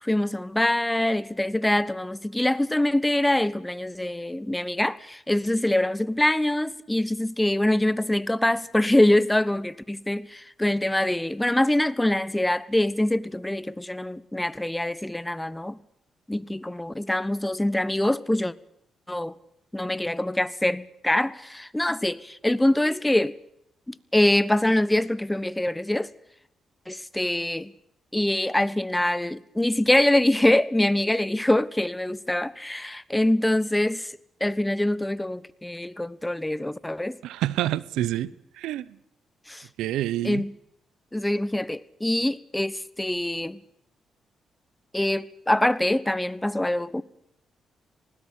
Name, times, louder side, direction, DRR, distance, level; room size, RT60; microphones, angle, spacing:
voice 1, 0.0-15.8 16.3-18.5 19.1-19.3 19.7-23.3 23.9-26.1 26.9-27.7 28.1-34.1 34.4-37.2 39.5-39.6 40.2-40.5 41.1-43.6 44.9-47.0, left 1 dB, 10° left, 1.1 m, -24 dB
voice 2, 37.2-39.0 39.8-40.4, right 13 dB, 85° right, 0.7 m, -28 dB
20.0 x 17.5 x 8.6 m
supercardioid pair, 60°, 0 cm